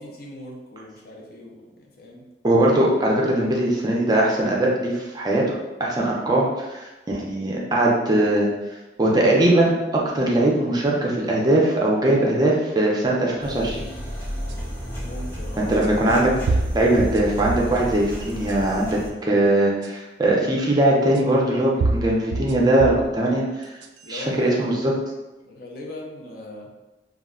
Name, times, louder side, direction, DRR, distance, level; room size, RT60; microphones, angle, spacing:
voice 1, 0.0-2.2 15.0-15.7 24.0-24.7 25.4-26.7, left 1 dB, 55° left, -1 dB, 0.6 m, -39 dB
voice 2, 2.4-8.5 9.0-13.8 15.6-23.7 24.1-24.9, right 1 dB, 20° right, -3 dB, 0.5 m, -20 dB
sound 1, 13.4-19.1, equal, 15° left, 0.7 m, -32 dB
sound 2, 14.5-14.6 15.8-15.9 16.5-17.8 18.3-18.9 19.8-19.9 21.1-21.2 21.8-23.1 23.6-24.2, right 3 dB, 90° right, 0.3 m, -26 dB
2.3 x 2.1 x 3.6 m, 1.1 s
head